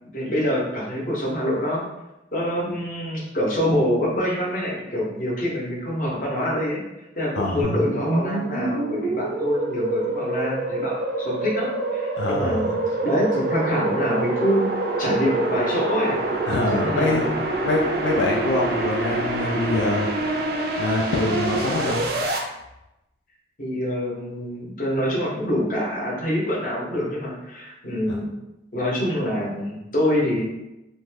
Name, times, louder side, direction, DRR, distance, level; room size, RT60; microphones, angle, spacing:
voice 1, 0.1-1.8 2.3-6.8 7.2-14.7 15.0-16.2 16.7-17.3 23.6-28.3 28.7-30.4, equal, 50° left, -5 dB, 0.8 m, -25 dB
sound 1, 7.6-22.4, right 2 dB, 55° right, 0.4 m, -26 dB
voice 2, 12.2-12.7 16.5-17.4 17.6-20.3 20.8-22.1 28.1-28.2, left 2 dB, 90° left, -2 dB, 0.4 m, -24 dB
2.6 x 2.2 x 3.1 m, 0.92 s
head